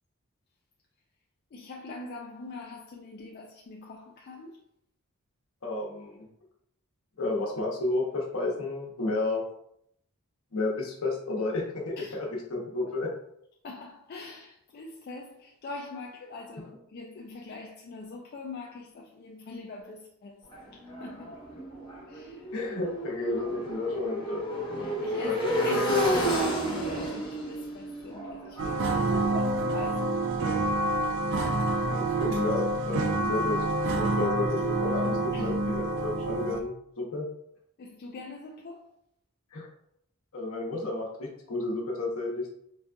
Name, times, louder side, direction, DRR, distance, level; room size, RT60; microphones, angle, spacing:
voice 1, 1.5-4.6 12.0-12.2 13.6-21.4 22.1-22.5 24.8-31.0 35.3-35.5 37.8-38.9, left 3 dB, 45° left, 0.3 m, -43 dB
voice 2, 5.6-6.3 7.2-9.4 10.5-13.1 22.5-24.5 25.2-25.5 29.1-29.4 31.9-33.6 33.9-37.3 39.5-39.7 40.3-42.5, left 2 dB, 70° left, 0.8 m, -32 dB
Motorcycle, 20.5-30.3, equal, 20° left, 0.9 m, -31 dB
sound 1, 28.6-36.6, right 2 dB, 55° right, 0.4 m, -27 dB
3.9 x 2.5 x 2.2 m
head